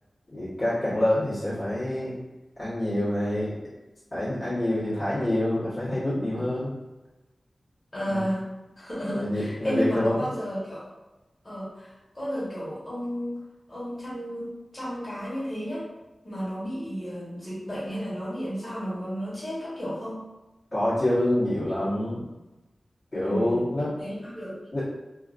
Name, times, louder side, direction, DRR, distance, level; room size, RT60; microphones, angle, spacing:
voice 1, 0.3-2.1 2.6-3.6 4.1-6.7 8.1-8.2 9.1-10.2 20.7-22.2 23.1-23.9 24.7-24.9, left 1 dB, 50° left, -11 dB, 1.2 m, -26 dB
voice 2, 7.9-8.5 8.8-10.8 11.4-13.3 13.7-15.9 16.2-20.2 23.2-23.7 24.0-24.6, equal, 30° left, -9 dB, 1.3 m, -32 dB
2.7 x 2.4 x 2.5 m, 1.1 s
wide cardioid pair, 80°, 0 cm